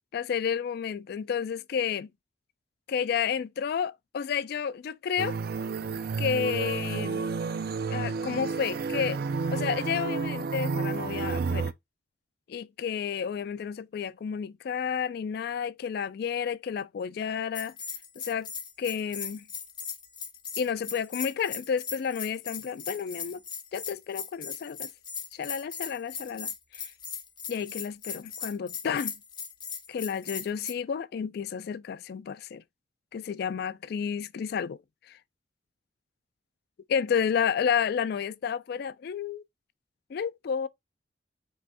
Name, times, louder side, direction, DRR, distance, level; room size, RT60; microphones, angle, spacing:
voice 1, 0.1-2.1 2.9-5.4 6.2-7.2 7.9-9.2 9.5-11.7 12.5-17.7 18.2-18.5 18.8-19.5 20.6-23.4 23.7-24.9 25.3-26.9 27.5-29.1 29.9-32.6 33.1-34.8 35.1-35.2 36.9-39.4 40.1-40.7, left 7 dB, 60° left, 0.3 m, -31 dB
sound 1, 5.2-11.7, right 4 dB, 60° right, 0.4 m, -31 dB
Bell, 17.5-30.7, left 6 dB, 25° left, 0.7 m, -38 dB
5.4 x 3.4 x 2.6 m
head